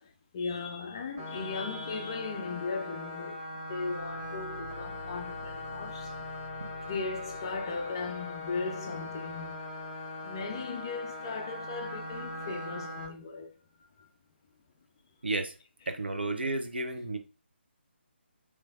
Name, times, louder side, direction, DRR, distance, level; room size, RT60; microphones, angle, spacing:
voice 1, 0.0-3.4 3.7-6.1 6.8-9.6 10.2-13.5 14.0-14.1, left 4 dB, 20° left, 0.4 m, -37 dB
sound 1, 1.2-13.1, left 2 dB, 5° right, 1.4 m, -40 dB
Car / Engine, 3.8-8.3, left 1 dB, 90° right, 1.7 m, -49 dB
voice 2, 15.2-15.5 15.9-17.2, right 2 dB, 60° right, 0.6 m, -32 dB
3.2 x 3.1 x 2.3 m
figure-of-eight pair, 150°, 6 cm